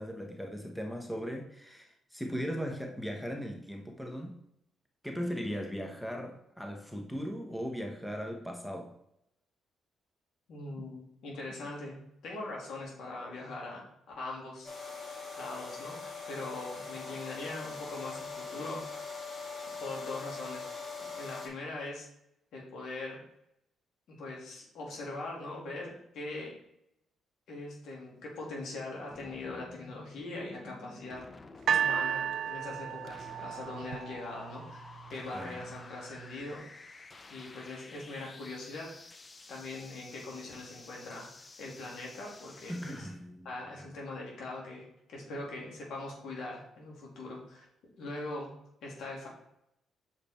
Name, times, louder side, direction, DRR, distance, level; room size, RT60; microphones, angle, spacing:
voice 1, 0.0-4.4 5.0-8.9 35.3-35.6 42.7-43.5, equal, 5° left, 2 dB, 1.1 m, -38 dB
voice 2, 10.5-13.8 14.2-14.7 15.4-18.9 19.8-20.8 21.1-22.1 22.5-23.2 24.1-26.6 27.5-31.2 31.7-37.0 37.3-38.9 39.5-41.3 41.6-43.1 43.4-47.7 48.0-48.6 48.8-49.3, left 2 dB, 70° left, -2 dB, 2.7 m, -41 dB
sound 1, 14.6-21.5, left 4 dB, 45° left, 2.9 m, -42 dB
sound 2, 29.1-43.1, left 3 dB, 30° left, 0.6 m, -51 dB
sound 3, 31.7-34.8 35.6-35.7, right 8 dB, 65° right, 0.3 m, -32 dB
6.7 x 5.1 x 4.4 m, 0.78 s
cardioid pair, 90°, 0 cm